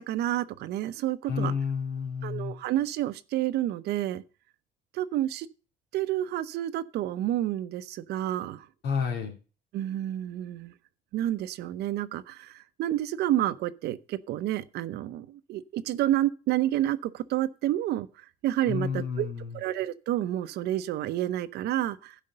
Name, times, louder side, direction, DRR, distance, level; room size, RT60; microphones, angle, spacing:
voice 1, 0.0-1.5 2.2-4.2 4.9-5.5 5.9-8.7 9.7-10.7 11.1-19.3 19.5-22.2, right 13 dB, 75° right, 0.7 m, -29 dB
voice 2, 1.3-2.5 8.8-9.3 18.7-19.6, left 6 dB, 80° left, 2.8 m, -30 dB
12.5 x 5.2 x 6.6 m
cardioid pair, 110°, 17 cm